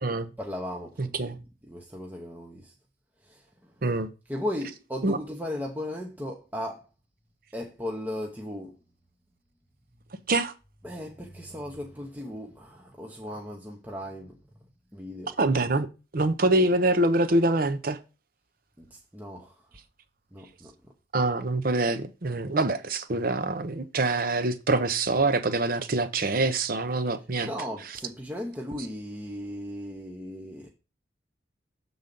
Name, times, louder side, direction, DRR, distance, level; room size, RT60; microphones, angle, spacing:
voice 1, 0.4-2.7 3.2-3.7 4.3-6.9 7.5-8.8 9.9-10.0 10.8-14.4 14.9-15.3 18.8-19.7 20.3-20.9 27.4-30.7, left 1 dB, 10° right, 0.8 m, -37 dB
voice 2, 15.4-15.9 16.1-18.0 21.1-27.5, right 2 dB, 45° right, 0.7 m, -25 dB
7.1 x 3.9 x 5.2 m
head